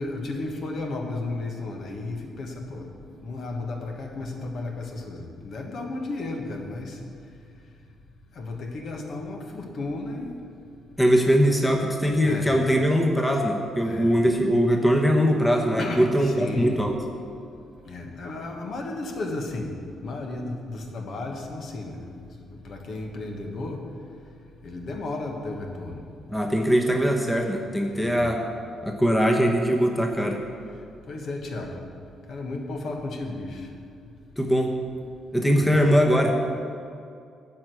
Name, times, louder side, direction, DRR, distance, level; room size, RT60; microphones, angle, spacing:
voice 1, 0.0-2.9 3.2-7.0 8.3-10.4 12.2-12.5 13.8-14.1 15.8-16.1 16.4-16.8 17.8-19.7 20.0-23.8 24.6-26.0 27.9-28.3 31.1-31.8 32.3-33.7 35.5-36.0, left 2 dB, 60° left, 2 dB, 1.4 m, -33 dB
voice 2, 11.0-16.9 26.3-28.4 28.8-30.4 34.4-34.8 35.3-36.5, equal, 10° left, 1 dB, 1.1 m, -21 dB
10.5 x 4.9 x 7.8 m, 2.4 s
cardioid pair, 90°, 0 cm